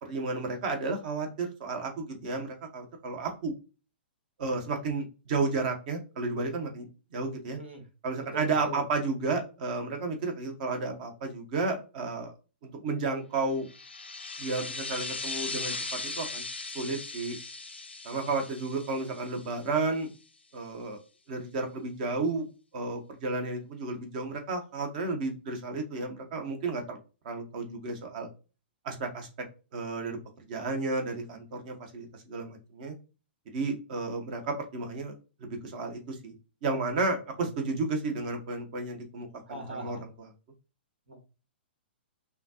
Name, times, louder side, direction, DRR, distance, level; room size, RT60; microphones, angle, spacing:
voice 1, 0.0-3.5 4.4-6.9 7.1-7.6 8.0-12.3 12.6-13.7 14.4-16.4 16.7-17.4 18.0-20.1 20.5-21.0 21.3-22.4 22.7-27.0 27.2-28.3 28.8-29.3 29.7-32.9 33.5-35.1 35.4-36.3 36.6-40.3, right 3 dB, 50° right, 4 dB, 1.2 m, -32 dB
voice 2, 8.3-8.8 39.5-40.0 41.1-41.2, right 1 dB, 80° right, 3 dB, 1.7 m, -40 dB
sound 1, 13.7-20.0, left 3 dB, 85° left, 0.7 m, -38 dB
5.6 x 2.5 x 2.8 m, 0.33 s
figure-of-eight pair, 115°, 6 cm